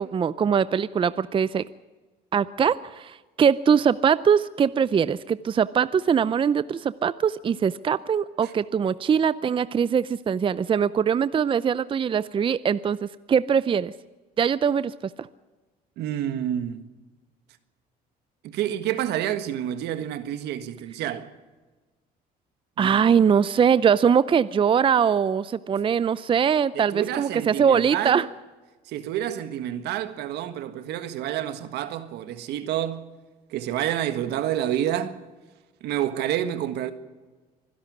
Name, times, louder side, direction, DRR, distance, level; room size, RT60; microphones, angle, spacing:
voice 1, 0.0-1.6 2.3-13.0 13.3-13.9 14.4-14.9 22.8-28.3, right 7 dB, 30° right, 0.5 m, -22 dB
voice 2, 16.0-16.9 18.4-21.3 22.8-23.0 26.7-28.3 28.8-33.1 33.5-35.2 35.8-36.9, right 11 dB, 80° right, 1.6 m, -29 dB
24.5 x 11.5 x 9.7 m
cardioid pair, 110°, 17 cm